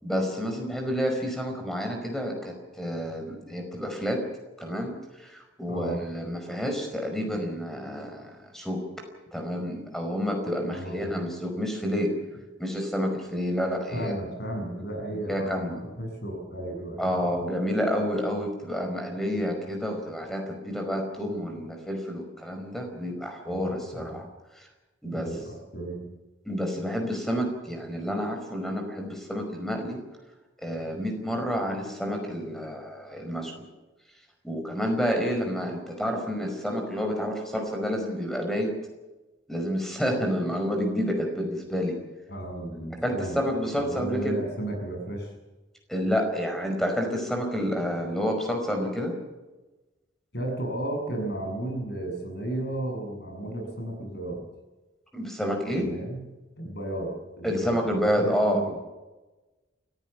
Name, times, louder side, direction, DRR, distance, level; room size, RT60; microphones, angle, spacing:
voice 1, 0.0-4.2 4.6-8.8 9.3-12.1 12.6-14.1 14.7-14.8 15.3-15.8 17.0-24.2 24.6-24.7 25.0-25.3 26.5-30.0 30.6-33.7 34.4-38.7 39.5-42.0 43.0-44.4 45.9-49.1 55.1-55.9 57.4-58.6, equal, ahead, 3 dB, 5.1 m, -29 dB
voice 2, 5.7-6.0 10.7-11.2 13.9-17.5 23.5-24.2 25.0-26.1 42.3-43.4 43.8-45.3 50.3-54.4 55.8-56.3 56.6-58.8, right 1 dB, 55° left, 2 dB, 7.5 m, -34 dB
29.0 x 15.5 x 7.1 m, 1.1 s
head